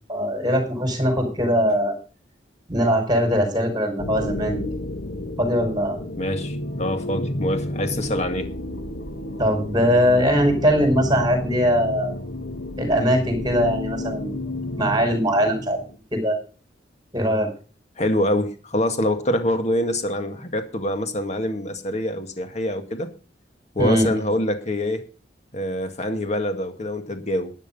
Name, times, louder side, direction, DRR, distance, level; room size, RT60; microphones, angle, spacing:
voice 1, 0.1-2.0 2.7-4.7 5.4-6.0 9.4-12.2 12.8-14.4 14.8-15.8 16.1-16.4 17.1-17.5 23.8-24.1, equal, 25° right, 5.2 m, -21 dB
sound 1, 4.0-16.0, left 1 dB, 85° left, 1.5 m, -31 dB
voice 2, 6.2-8.5 18.0-23.1 23.8-25.0 25.5-27.5, left 1 dB, 40° left, 2.0 m, -25 dB
12.5 x 10.5 x 5.5 m
head